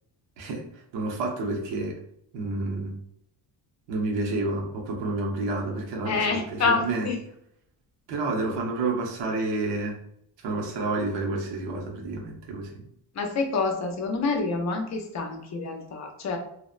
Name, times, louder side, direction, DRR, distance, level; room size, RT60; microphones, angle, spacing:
voice 1, 0.4-2.0 2.3-3.0 3.9-7.1 8.1-10.0 10.4-12.9, right 2 dB, 80° right, 0 dB, 0.8 m, -29 dB
voice 2, 6.1-7.2 13.1-16.4, left 4 dB, 40° left, 4 dB, 0.5 m, -27 dB
2.8 x 2.0 x 2.4 m, 0.74 s
cardioid pair, 145°, 43 cm